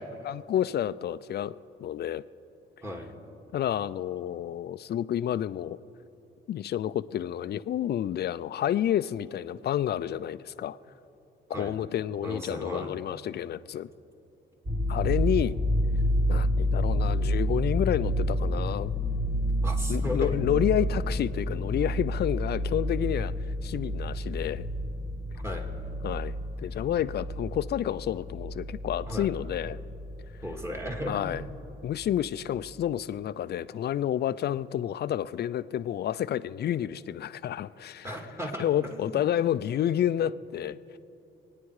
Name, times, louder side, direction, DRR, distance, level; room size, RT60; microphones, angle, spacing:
voice 1, 0.2-1.5 1.8-2.2 3.5-5.8 6.5-10.8 11.5-13.9 14.9-15.6 16.3-18.9 19.9-24.6 26.0-29.8 31.1-31.4 31.8-38.1 38.6-41.0, left 11 dB, 55° left, 16 dB, 0.5 m, -30 dB
voice 2, 12.2-12.9 19.6-20.8 25.4-25.7 29.1-29.3 30.4-31.2 38.0-39.3, equal, 15° right, 2 dB, 2.2 m, -36 dB
sound 1, 14.6-31.7 32.0-32.3, equal, 40° right, 3.8 m, -29 dB
27.0 x 9.7 x 4.9 m, 2.8 s
cardioid pair, 90°, 20 cm